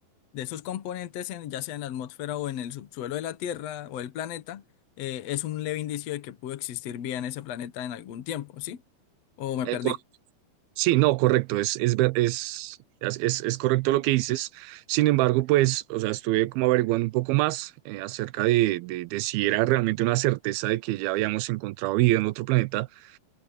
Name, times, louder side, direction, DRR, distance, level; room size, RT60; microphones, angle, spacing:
voice 1, 0.3-4.6 5.0-8.8 9.4-10.0, left 11 dB, 65° left, 1.7 m, -33 dB
voice 2, 9.7-10.0 10.8-23.2, right 18 dB, 85° right, 2.5 m, -25 dB
omnidirectional pair, 4.3 m